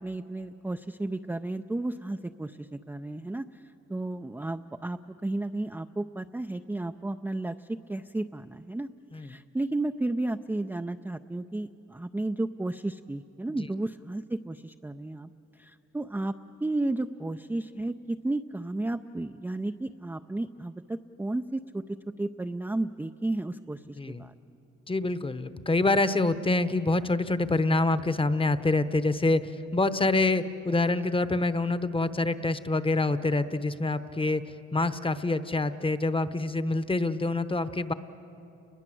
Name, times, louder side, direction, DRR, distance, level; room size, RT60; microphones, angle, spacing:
voice 1, 0.0-3.6 3.9-8.9 9.1-15.3 15.6-16.3 16.6-24.3 25.0-25.1, right 2 dB, 5° right, 6 dB, 0.5 m, -33 dB
voice 2, 24.9-29.4 29.7-34.4 34.7-37.9, left 2 dB, 15° left, 12 dB, 1.0 m, -26 dB
30.0 x 21.0 x 7.7 m, 2.9 s
cardioid pair, 90°, 30 cm